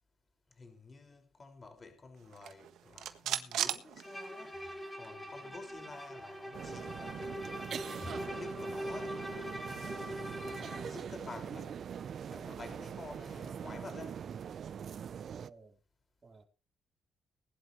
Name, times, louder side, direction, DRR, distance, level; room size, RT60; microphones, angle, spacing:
voice 1, 0.5-4.7 4.9-7.5 8.1-11.8 12.3-14.4, left 3 dB, 35° left, 5.6 m, -50 dB
sound 1, 2.3-4.7 5.0-5.1 5.4-7.3, right 11 dB, 80° right, 1.5 m, -39 dB
Bowed string instrument, 4.0-11.0, equal, 5° left, 6.6 m, -42 dB
voice 2, 5.0-5.4 15.1-15.8 16.2-16.4, right 4 dB, 30° right, 4.1 m, -58 dB
sound 2, 6.5-15.5, right 8 dB, 55° right, 0.6 m, -43 dB
20.5 x 11.5 x 3.2 m
cardioid pair, 90°, 0 cm